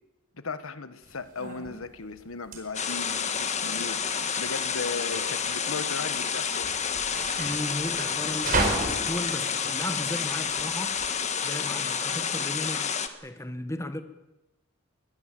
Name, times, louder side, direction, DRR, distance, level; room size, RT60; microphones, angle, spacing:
voice 1, 0.3-6.9, left 4 dB, 75° left, 1.3 m, -37 dB
sound 1, 1.0-11.1, right 3 dB, 40° right, 4.8 m, -35 dB
sound 2, 2.7-13.1, left 6 dB, 35° left, 1.6 m, -29 dB
voice 2, 7.4-11.2 11.4-14.0, left 1 dB, 15° left, 1.5 m, -36 dB
22.0 x 21.0 x 7.6 m
head